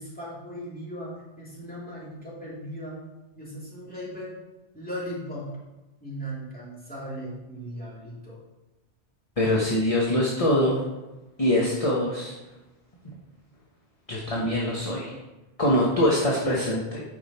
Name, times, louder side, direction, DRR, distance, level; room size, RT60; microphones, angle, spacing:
voice 1, 0.0-3.0 3.4-4.3 4.7-5.5 6.0-8.4, equal, 5° left, -8 dB, 2.9 m, -37 dB
voice 2, 9.4-10.8 11.4-12.3 13.0-13.2 14.1-15.2 15.6-17.0, left 1 dB, 30° left, -4 dB, 1.2 m, -23 dB
8.5 x 5.9 x 4.3 m, 1.1 s
omnidirectional pair, 1.2 m